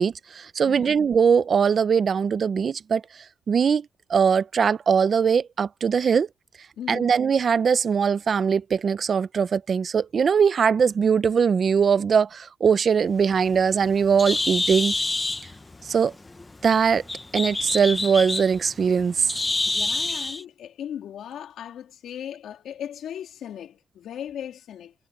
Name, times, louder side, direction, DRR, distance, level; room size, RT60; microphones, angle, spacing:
voice 1, 0.0-3.0 3.5-6.3 6.9-14.9 15.8-16.1 16.6-17.0 17.3-19.3, right 6 dB, 50° right, 0.6 m, -21 dB
voice 2, 6.8-7.1 19.6-24.9, left 9 dB, 80° left, 2.9 m, -37 dB
Bird, 13.1-20.4, left 2 dB, 20° left, 0.7 m, -28 dB
cardioid pair, 105°, 0 cm